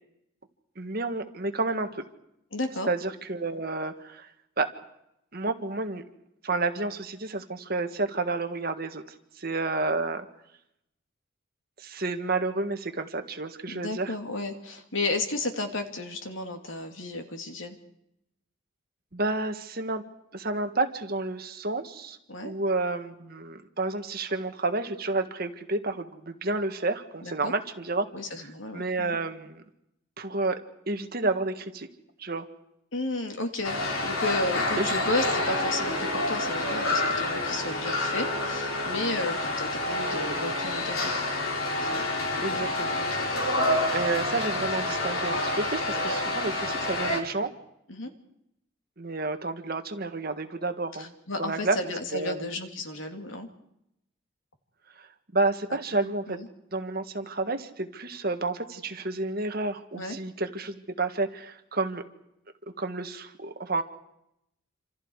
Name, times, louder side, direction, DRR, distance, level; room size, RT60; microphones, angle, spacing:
voice 1, 0.7-2.0 2.9-4.3 4.6-4.7 5.3-6.0 6.4-9.0 9.4-10.2 11.8-14.1 19.1-20.0 20.3-22.2 22.4-28.1 28.4-29.6 30.2-30.6 30.9-31.9 32.2-32.5 34.8-35.0 42.4-43.0 43.9-47.5 49.0-51.1 51.4-51.8 52.1-52.4 55.0-55.1 55.3-56.4 56.7-62.0 62.8-63.8, right 3 dB, 45° right, 7 dB, 1.7 m, -30 dB
voice 2, 2.5-2.9 13.7-17.8 22.3-22.5 27.2-27.5 28.1-29.2 32.9-41.2 41.8-42.0 42.5-42.7 42.9-43.3 47.9-48.1 51.0-53.5 56.3-56.5 59.9-60.2, left 2 dB, 70° left, 4 dB, 2.9 m, -33 dB
sound 1, 33.6-47.2, left 2 dB, 90° left, 4.0 m, -28 dB
27.5 x 27.0 x 4.9 m, 0.81 s
head